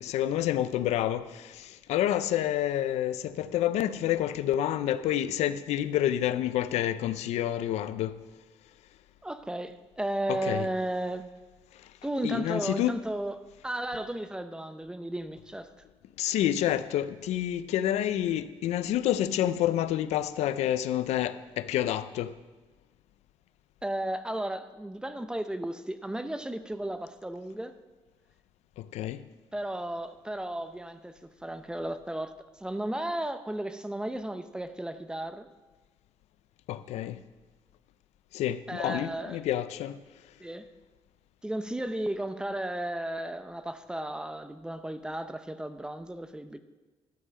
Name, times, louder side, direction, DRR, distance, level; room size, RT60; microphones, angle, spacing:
voice 1, 0.0-8.2 10.3-10.7 12.2-13.0 16.2-22.3 28.8-29.2 36.7-37.2 38.3-40.0, left 12 dB, 90° left, 0.5 m, -28 dB
voice 2, 9.2-11.3 12.0-15.7 23.8-27.7 29.5-32.3 32.6-35.5 38.7-39.4 40.4-40.7 41.4-46.6, right 1 dB, 5° right, 0.7 m, -34 dB
13.0 x 5.5 x 7.4 m
cardioid pair, 110°, 11 cm